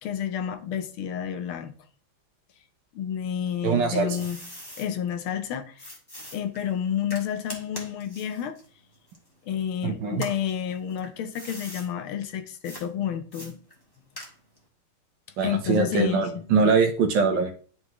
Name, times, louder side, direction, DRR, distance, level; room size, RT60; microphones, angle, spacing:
voice 1, 0.0-1.7 2.9-4.4 4.8-5.9 6.3-8.6 9.5-13.6 15.4-16.4, left 9 dB, 80° left, 1.6 m, -30 dB
sound 1, 3.5-4.9 5.8-9.7 10.1-11.9 12.6-12.9 13.3-14.6, equal, 10° left, 1.4 m, -43 dB
voice 2, 3.6-4.2 9.8-10.2 15.4-17.5, right 5 dB, 65° right, 1.4 m, -23 dB
10.5 x 3.9 x 3.0 m
omnidirectional pair, 2.3 m